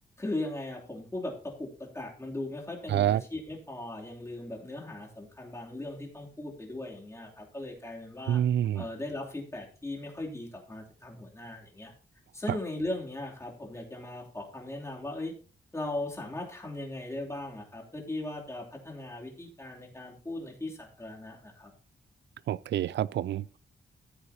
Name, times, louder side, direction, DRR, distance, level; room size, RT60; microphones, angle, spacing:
voice 1, 0.2-8.4 8.7-11.9 12.3-15.3 15.7-21.7, left 2 dB, 15° left, 3.0 m, -38 dB
voice 2, 2.9-3.2 8.3-8.8 12.5-12.6 22.5-23.6, right 11 dB, 90° right, 0.4 m, -27 dB
15.0 x 8.2 x 2.9 m
wide cardioid pair, 115°, 18 cm